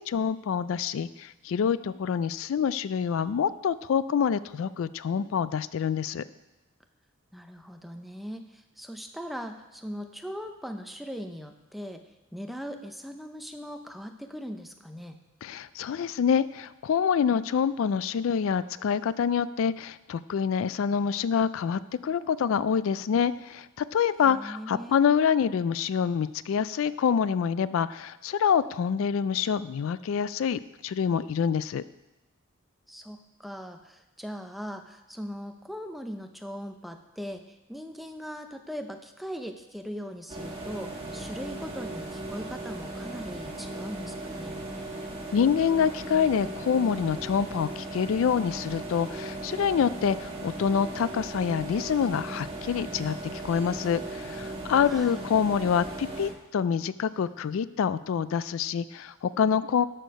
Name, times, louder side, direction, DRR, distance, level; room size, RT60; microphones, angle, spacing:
voice 1, 0.0-6.2 15.4-31.8 45.3-59.8, left 7 dB, 70° left, 16 dB, 0.3 m, -26 dB
voice 2, 7.3-12.0 12.3-15.2 24.2-24.9 32.9-44.6 54.9-55.2, equal, ahead, 5 dB, 0.6 m, -40 dB
sound 1, 40.3-56.3, right 2 dB, 25° right, 1.7 m, -37 dB
12.5 x 6.6 x 5.2 m, 1.0 s
head